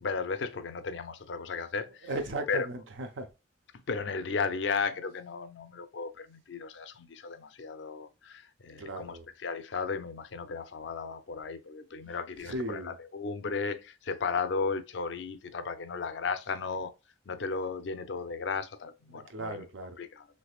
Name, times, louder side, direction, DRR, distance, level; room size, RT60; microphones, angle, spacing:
voice 1, 0.0-2.1 2.5-2.7 3.9-16.9 17.3-19.6 20.0-20.3, left 5 dB, 70° left, 0.5 m, -35 dB
voice 2, 2.0-3.3 8.8-9.2 12.5-12.9 19.1-20.0, right 2 dB, 80° right, 0.6 m, -36 dB
3.3 x 3.2 x 2.3 m
head